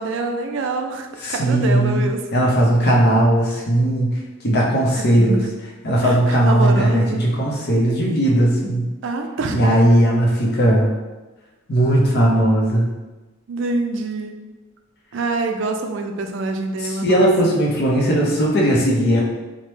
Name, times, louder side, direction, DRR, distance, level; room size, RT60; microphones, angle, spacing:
voice 1, 0.0-2.2 4.9-5.5 6.0-7.2 9.0-9.6 13.5-14.3 15.1-17.3, right 3 dB, 70° right, 4 dB, 0.3 m, -25 dB
voice 2, 1.2-2.0 2.3-4.1 4.4-5.4 5.8-8.9 9.5-10.9 11.7-12.9 16.8-19.2, right 1 dB, 55° left, -3 dB, 0.6 m, -17 dB
3.0 x 2.1 x 3.2 m, 1.2 s
head